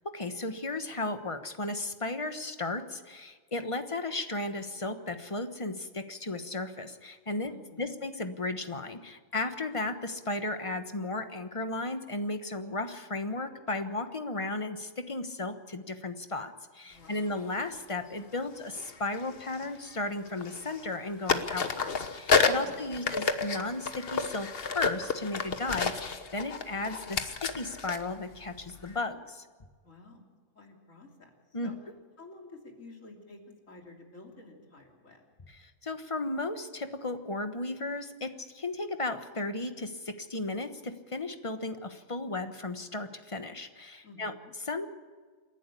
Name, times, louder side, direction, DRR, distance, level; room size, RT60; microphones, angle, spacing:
voice 1, 0.0-7.5 7.8-29.5 31.5-31.7 35.5-44.3 44.6-44.9, left 2 dB, 25° left, 8 dB, 1.2 m, -35 dB
voice 2, 7.4-8.0 16.8-17.3 22.5-23.1 29.8-30.2 30.6-31.3 31.6-31.8 32.2-33.4 33.7-35.2 44.0-44.5, left 3 dB, 75° left, 1 dB, 3.5 m, -51 dB
sound 1, 17.1-17.3 18.7-20.0 20.3-21.0 21.3-29.0, left 5 dB, 50° left, 1.3 m, -31 dB
28.0 x 11.5 x 8.4 m, 1.5 s
omnidirectional pair, 1.4 m